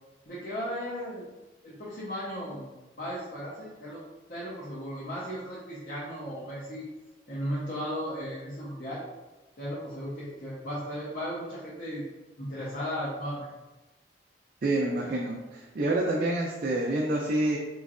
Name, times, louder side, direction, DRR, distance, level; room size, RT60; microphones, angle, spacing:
voice 1, 0.3-1.3 1.6-2.7 3.0-4.0 4.3-6.9 7.3-9.0 9.6-12.0 12.4-13.5, equal, 50° left, -8 dB, 0.8 m, -36 dB
voice 2, 14.6-17.6, right 2 dB, 50° right, -2 dB, 0.4 m, -27 dB
4.3 x 3.1 x 2.5 m, 1.1 s
head